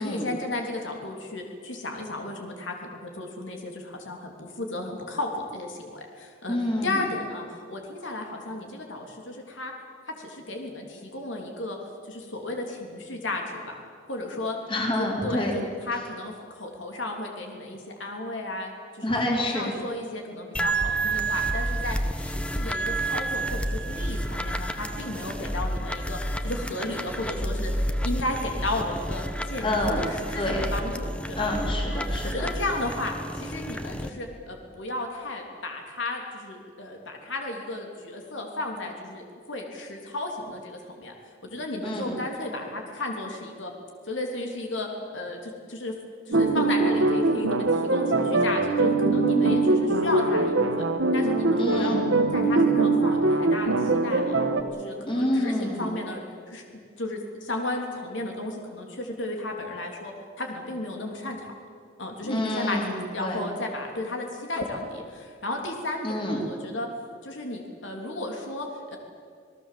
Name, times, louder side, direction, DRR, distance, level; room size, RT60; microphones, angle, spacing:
voice 1, 0.0-6.6 6.8-9.7 10.2-11.8 12.1-13.7 14.1-14.6 15.0-19.1 19.4-27.7 28.0-31.5 31.9-32.0 32.3-41.1 41.4-43.7 44.1-44.9 45.1-45.9 46.3-50.9 51.1-52.0 52.3-54.4 54.8-56.6 57.0-61.5 62.0-62.8 63.1-66.9 67.2-69.0, left 2 dB, 80° left, 2 dB, 3.3 m, -34 dB
voice 2, 6.5-7.0 14.7-15.6 19.0-19.7 29.6-30.1 30.4-30.7 31.4-32.5 41.8-42.2 51.5-52.0 55.1-55.9 62.3-63.4 66.0-66.4, left 1 dB, 25° left, 0 dB, 3.9 m, -28 dB
sound 1, 20.5-34.1, right 1 dB, 5° left, 1.2 m, -30 dB
sound 2, 46.3-54.6, right 2 dB, 90° right, 1.8 m, -22 dB
28.0 x 19.5 x 7.7 m, 2.2 s
head